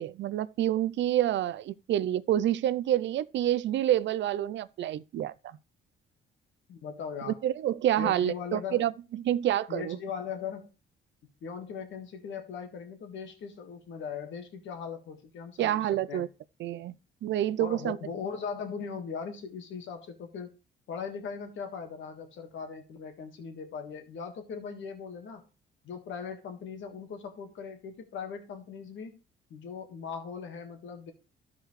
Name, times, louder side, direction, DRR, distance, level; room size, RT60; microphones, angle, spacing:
voice 1, 0.0-5.3 7.4-10.0 15.6-16.3 16.6-16.9 17.2-18.0, right 12 dB, 65° right, 0.5 m, -28 dB
voice 2, 6.7-7.4 8.0-8.8 9.7-10.7 11.4-16.3 17.6-20.5 20.9-25.4 25.8-29.2 29.5-31.1, left 6 dB, 75° left, 1.7 m, -39 dB
13.5 x 4.8 x 3.2 m
cardioid pair, 90°, 20 cm